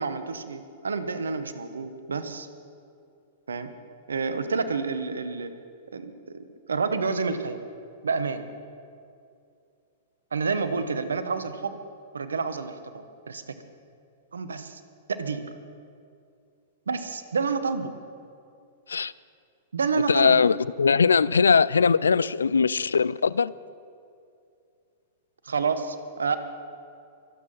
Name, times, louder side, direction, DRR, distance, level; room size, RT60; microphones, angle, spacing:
voice 1, 0.0-2.5 3.5-3.7 4.1-5.5 5.9-6.4 6.7-7.6 8.0-8.5 10.3-11.8 12.1-13.6 14.3-14.8 15.1-15.5 16.9-17.9 19.7-20.4 25.4-26.4, right 4 dB, 80° right, 11 dB, 1.1 m, -29 dB
voice 2, 20.1-23.5, left 5 dB, 80° left, 21 dB, 0.3 m, -21 dB
24.0 x 8.6 x 5.7 m, 2.5 s
hypercardioid pair, 105°, 0 cm